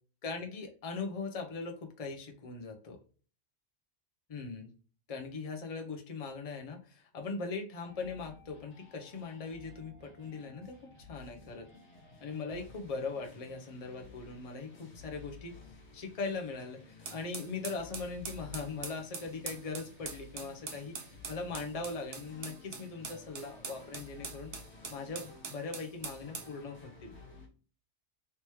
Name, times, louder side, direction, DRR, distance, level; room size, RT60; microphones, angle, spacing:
voice 1, 0.2-3.0 4.3-4.7 5.1-11.7 12.2-15.6 15.9-24.5 24.9-27.1, left 4 dB, 40° left, 4 dB, 0.6 m, -40 dB
sound 1, 7.8-27.5, left 3 dB, 70° left, 1.3 m, -54 dB
sound 2, 17.1-26.5, right 5 dB, 80° right, 1.1 m, -43 dB
3.3 x 2.9 x 3.1 m, 0.39 s
omnidirectional pair, 1.2 m